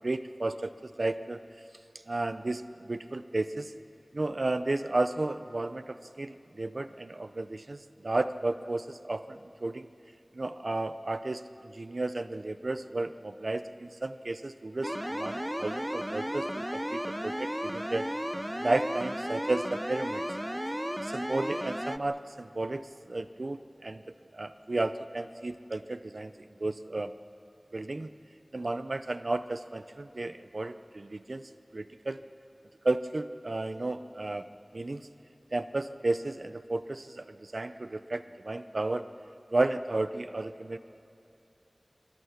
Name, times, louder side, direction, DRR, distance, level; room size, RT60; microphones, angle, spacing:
voice 1, 0.0-1.4 2.1-3.7 4.1-9.9 10.3-18.1 18.6-20.2 21.0-22.8 23.1-24.0 24.3-26.3 26.6-27.1 27.7-28.1 28.5-31.4 31.7-32.2 32.8-34.4 34.7-35.1 35.5-39.1 39.5-40.8, right 2 dB, 75° right, 12 dB, 0.7 m, -33 dB
sound 1, 14.8-22.0, equal, 10° right, 0.5 m, -34 dB
26.5 x 21.0 x 5.9 m, 2.7 s
wide cardioid pair, 50°, 0 cm